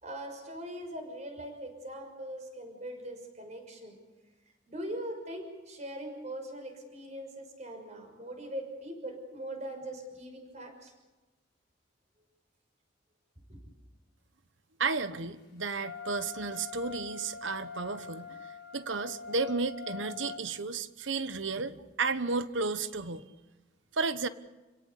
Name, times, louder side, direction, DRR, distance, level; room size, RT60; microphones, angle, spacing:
voice 1, 0.0-4.0 4.7-10.9 13.5-13.6, right 1 dB, 40° right, 4 dB, 6.1 m, -41 dB
voice 2, 14.8-18.4 18.7-23.3 23.9-24.3, right 4 dB, 80° right, 12 dB, 1.2 m, -33 dB
Wind instrument woodwind instrument, 15.8-20.4, left 6 dB, 55° left, 1.5 m, -44 dB
30.0 x 17.5 x 8.4 m, 1.2 s
head